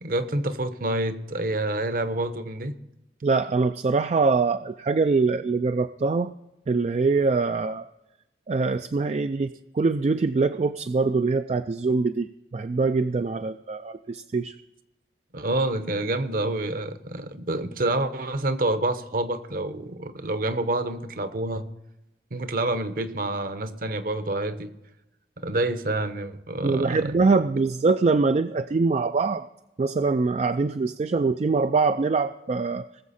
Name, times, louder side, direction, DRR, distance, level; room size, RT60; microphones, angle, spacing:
voice 1, 0.0-2.7 15.3-21.7 22.3-24.7 25.4-27.1, right 2 dB, 55° right, 11 dB, 0.9 m, -28 dB
voice 2, 3.2-6.3 6.7-7.9 8.5-9.5 9.7-14.6 26.6-29.4 29.8-32.8, right 4 dB, 40° right, 10 dB, 0.3 m, -23 dB
20.0 x 7.3 x 4.2 m, 0.94 s
head